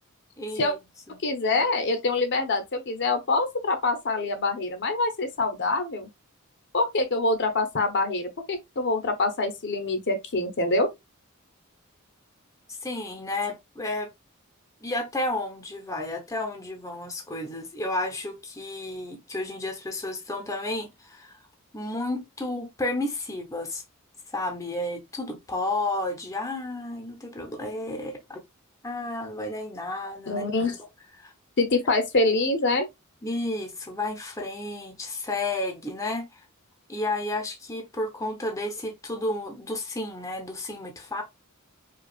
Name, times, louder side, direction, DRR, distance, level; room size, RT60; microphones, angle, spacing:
voice 1, 0.4-0.7 1.1-1.2 12.8-14.1 14.8-21.4 21.7-23.8 24.3-28.4 28.8-30.4 31.2-31.3 33.2-36.4 36.9-41.2, left 2 dB, 15° left, 0.7 m, -32 dB
voice 2, 1.2-6.1 6.7-10.9 30.3-30.8 31.6-32.9, left 2 dB, 55° left, 0.8 m, -25 dB
4.9 x 2.3 x 2.4 m
head